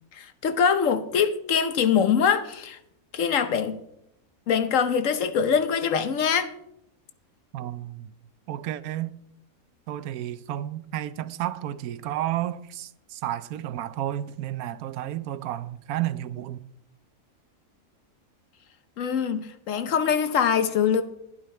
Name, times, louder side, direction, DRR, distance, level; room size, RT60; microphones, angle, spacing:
voice 1, 0.2-2.8 3.1-3.8 4.5-6.5 19.0-21.0, left 7 dB, 65° left, 1.1 m, -23 dB
voice 2, 7.5-8.1 8.5-9.2 9.9-16.7, right 12 dB, 85° right, 1.1 m, -32 dB
11.0 x 11.0 x 4.3 m
omnidirectional pair, 1.5 m